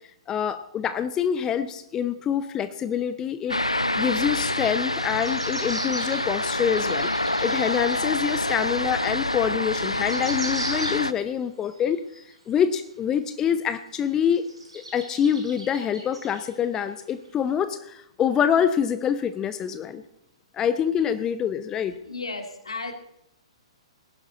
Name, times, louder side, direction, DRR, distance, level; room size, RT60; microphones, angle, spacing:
voice 1, 0.3-3.6 4.0-7.1 7.4-12.0 12.5-14.4 14.7-20.0 20.5-21.9, left 8 dB, 20° left, 12 dB, 0.6 m, -25 dB
sound 1, 3.5-11.1, left 1 dB, 85° left, 0.5 m, -27 dB
sound 2, 5.1-8.1 8.6-8.7 9.4-9.5 9.7-11.3 11.6-12.5 13.1-13.2 13.7-13.8 14.3-16.8 17.3-17.4, right 2 dB, 80° right, 5.7 m, -39 dB
voice 2, 22.0-23.0, left 3 dB, 70° left, 6 dB, 2.3 m, -34 dB
19.0 x 11.0 x 4.2 m, 0.80 s
figure-of-eight pair, 115°, 3 cm